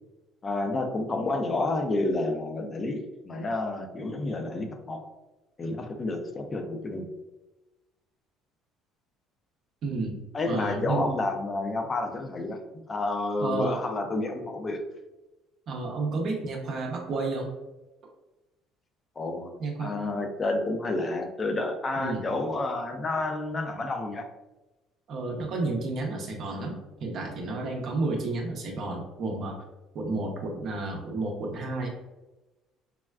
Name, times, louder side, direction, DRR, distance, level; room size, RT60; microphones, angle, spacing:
voice 1, 0.4-5.0 5.6-7.0 10.3-12.6 12.9-14.8 19.2-19.5 19.8-24.3, left 2 dB, 30° left, 5 dB, 0.5 m, -30 dB
voice 2, 9.8-10.2 10.5-11.1 13.4-13.8 15.7-17.5 19.6-19.9 22.0-22.2 25.1-29.6 29.9-31.9, right 3 dB, 55° right, 0 dB, 0.6 m, -31 dB
3.5 x 2.2 x 2.2 m, 1.1 s
cardioid pair, 105°, 0 cm